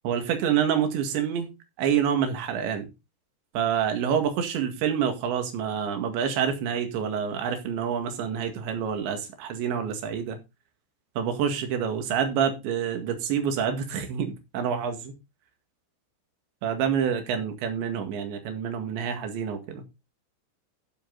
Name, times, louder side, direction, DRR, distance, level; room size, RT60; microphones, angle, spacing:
voice 1, 0.1-1.5 1.8-2.9 3.5-10.4 11.2-15.1 16.6-19.8, right 8 dB, 90° right, 4.3 m, -27 dB
13.5 x 7.6 x 4.0 m
omnidirectional pair, 5.0 m